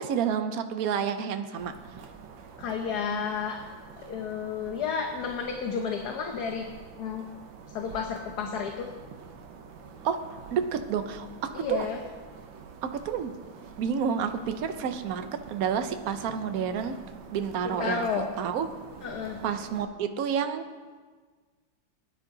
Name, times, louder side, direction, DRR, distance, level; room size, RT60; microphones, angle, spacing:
voice 1, 0.0-1.7 10.0-11.9 12.8-13.3 13.8-17.0 17.3-18.1 18.4-18.7 19.4-20.6, right 7 dB, 60° right, 8 dB, 1.1 m, -29 dB
sound 1, 1.5-19.9, right 5 dB, 75° right, 1.7 m, -47 dB
voice 2, 2.6-3.6 4.0-6.6 7.0-7.3 7.7-8.9 11.5-12.0 17.6-18.3 19.0-19.4, left 6 dB, 60° left, 3 dB, 1.3 m, -31 dB
18.0 x 9.8 x 4.0 m, 1.5 s
omnidirectional pair, 2.1 m